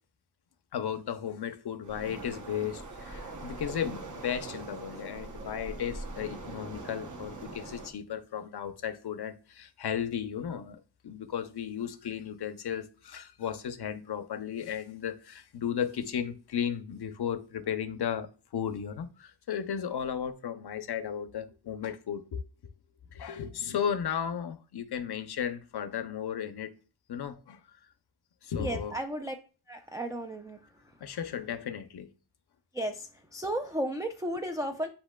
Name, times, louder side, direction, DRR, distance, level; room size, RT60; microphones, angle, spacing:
voice 1, 0.7-22.4 23.1-26.7 27.1-27.6 28.4-29.0 31.0-32.1, left 8 dB, 60° left, 0.6 m, -35 dB
Waves surf, 1.8-7.9, right 2 dB, 40° right, 0.8 m, -42 dB
voice 2, 28.6-29.3 29.7-30.6 32.7-34.9, right 1 dB, 10° right, 0.4 m, -34 dB
8.1 x 2.8 x 2.2 m
wide cardioid pair, 80°, 46 cm